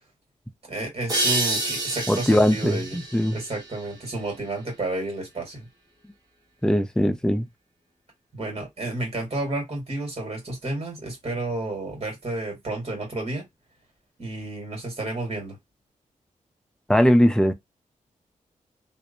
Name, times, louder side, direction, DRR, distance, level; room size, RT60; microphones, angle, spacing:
voice 1, 0.6-3.0 3.3-5.7 8.3-13.5 14.2-15.6, right 2 dB, 45° right, 1.6 m, -31 dB
sound 1, 1.1-4.5, right 2 dB, 30° right, 1.3 m, -29 dB
voice 2, 2.1-3.4 6.6-7.5 16.9-17.5, equal, 5° left, 0.5 m, -20 dB
2.6 x 2.1 x 2.6 m
cardioid pair, 70°, 14 cm